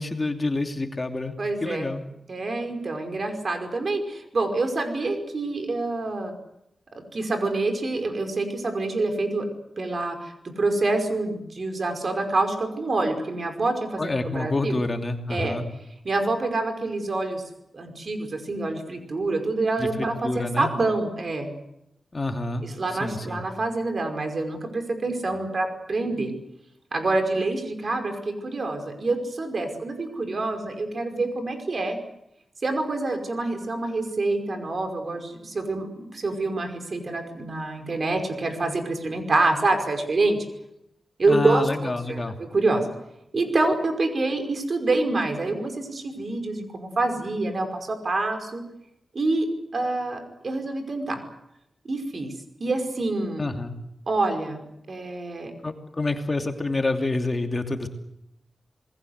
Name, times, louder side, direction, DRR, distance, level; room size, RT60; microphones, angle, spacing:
voice 1, 0.0-1.4 1.6-2.0 14.0-15.6 19.8-20.7 22.1-22.6 23.0-23.4 41.3-42.4 53.4-53.7 55.6-57.9, left 2 dB, 35° left, 5 dB, 2.8 m, -27 dB
voice 2, 1.4-1.9 2.3-6.3 6.9-9.5 9.8-14.8 15.3-15.6 16.0-17.4 17.7-21.5 22.6-26.3 26.9-32.0 32.6-40.4 41.2-42.9 43.3-48.6 49.1-49.5 49.7-51.2 51.9-52.3 52.6-53.5 54.1-55.5, right 2 dB, 55° right, 6 dB, 5.4 m, -26 dB
27.5 x 20.5 x 8.1 m, 0.81 s
wide cardioid pair, 75°, 0 cm